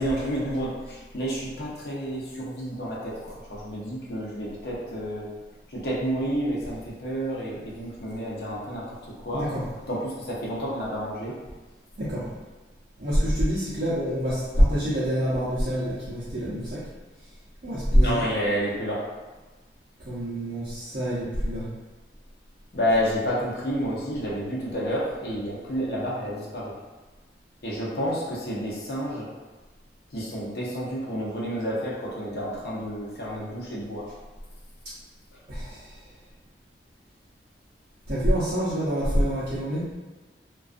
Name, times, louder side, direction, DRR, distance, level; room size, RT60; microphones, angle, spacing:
voice 1, 0.0-5.3 5.7-9.0 9.2-9.5 9.9-11.3 18.0-19.1 22.7-26.7 27.6-29.3 30.1-34.0, equal, 60° left, -6 dB, 0.7 m, -30 dB
voice 2, 9.3-9.6 12.0-12.3 13.0-16.8 17.2-17.3 17.6-18.2 20.0-21.7 35.5-36.1 38.1-39.8, equal, 50° right, -12 dB, 0.6 m, -25 dB
2.4 x 2.3 x 2.4 m, 1.2 s
head